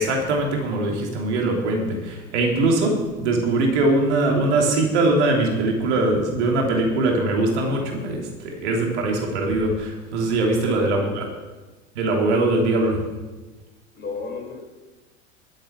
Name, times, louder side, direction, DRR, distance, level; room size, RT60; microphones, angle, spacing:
voice 1, 0.0-11.3 11.9-13.0, right 2 dB, 60° right, 1 dB, 3.2 m, -22 dB
voice 2, 10.6-11.3 13.9-14.6, left 4 dB, 25° left, 2 dB, 4.4 m, -34 dB
13.0 x 8.7 x 7.1 m, 1.2 s
figure-of-eight pair, 80°, 38 cm